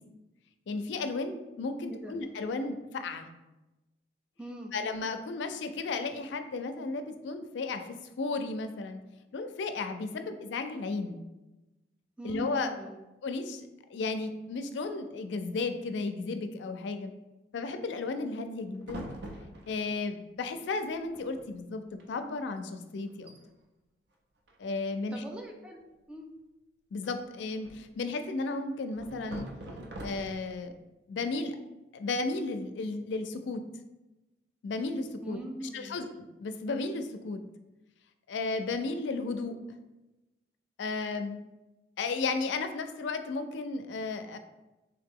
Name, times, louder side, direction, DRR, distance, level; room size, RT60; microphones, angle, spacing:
voice 1, 0.7-3.3 4.7-9.0 9.3-11.2 12.2-12.7 13.2-17.1 17.5-19.1 19.7-23.3 24.6-25.2 26.9-29.5 30.0-30.7 31.1-31.6 31.9-33.6 34.6-35.4 35.7-37.4 38.3-39.6 40.8-41.4 42.0-44.4, left 3 dB, 80° left, 8 dB, 0.4 m, -34 dB
voice 2, 1.9-2.2 4.4-4.7 12.2-13.0 25.1-25.8 26.1-26.3 35.2-36.0, right 1 dB, 5° right, 1 dB, 0.4 m, -41 dB
sound 1, 18.8-20.0 20.9-21.0 21.1-21.5 21.9-22.0 22.6-22.7 23.1-23.4 24.5-25.0 27.0-28.0 29.0-30.6, right 1 dB, 65° right, 0.5 m, -44 dB
3.4 x 2.8 x 3.6 m, 1.0 s
head